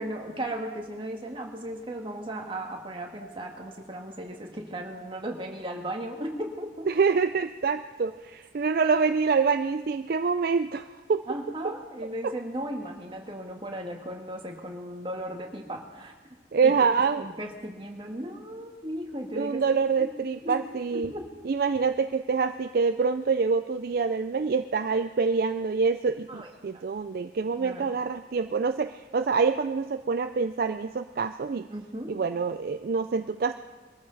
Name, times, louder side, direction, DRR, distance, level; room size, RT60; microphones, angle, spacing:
voice 1, 0.0-6.9 8.7-8.8 11.3-16.1 16.6-16.7 17.2-19.6 20.0-20.1 20.4-20.6 20.9-21.3 26.3-26.5 27.6-27.9 31.7-32.2, right 1 dB, 30° right, 1 dB, 1.8 m, -36 dB
voice 2, 6.9-11.2 12.2-12.3 16.5-17.3 19.3-21.1 21.4-31.7 32.1-33.5, right 5 dB, 55° right, 9 dB, 0.4 m, -26 dB
23.0 x 13.5 x 4.0 m, 1.3 s
head